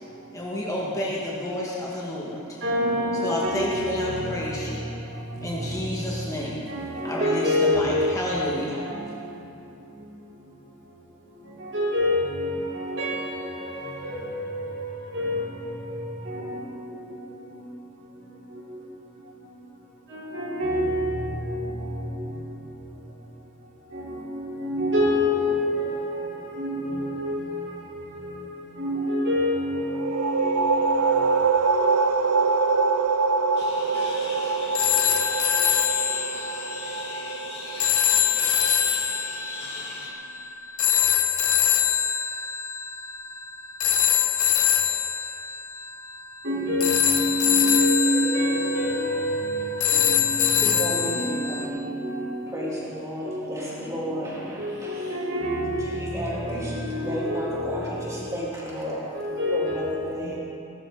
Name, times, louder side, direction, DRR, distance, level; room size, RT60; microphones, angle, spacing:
voice 1, 0.3-2.6 3.2-4.9 5.4-6.7 7.0-8.8, equal, 15° left, -5 dB, 1.9 m, -30 dB
voice 2, 2.6-4.9 5.3-5.8 6.4-9.1 11.5-14.8 15.1-15.8 16.2-17.1 18.5-18.9 20.1-22.4 23.9-28.5 28.8-31.1 46.4-52.8 53.2-53.4 54.0-56.0 56.3-58.4 59.1-60.4, left 1 dB, 55° right, -5 dB, 4.1 m, -28 dB
sound 1, 29.9-39.3, right 4 dB, 90° right, 0.6 m, -24 dB
sound 2, 33.6-40.1, left 3 dB, 50° left, 2.7 m, -39 dB
sound 3, 34.7-51.6, left 9 dB, 75° left, 1.0 m, -24 dB
voice 3, 50.5-51.9 52.5-55.2 55.8-59.0 59.5-60.4, equal, 15° right, -7 dB, 3.2 m, -33 dB
19.0 x 13.0 x 4.0 m, 2.6 s
head